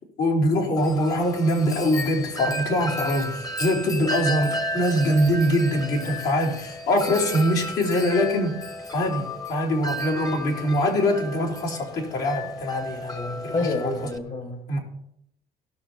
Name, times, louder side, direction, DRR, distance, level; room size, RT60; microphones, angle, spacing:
voice 1, 0.2-8.6 8.9-13.9 14.7-14.8, equal, 75° left, -4 dB, 4.3 m, -23 dB
Wind chime, 0.8-14.2, equal, 20° left, 1.1 m, -33 dB
voice 2, 13.5-14.8, left 3 dB, 45° left, 4 dB, 1.8 m, -28 dB
18.0 x 6.4 x 4.5 m, 0.76 s
cardioid pair, 110°, 17 cm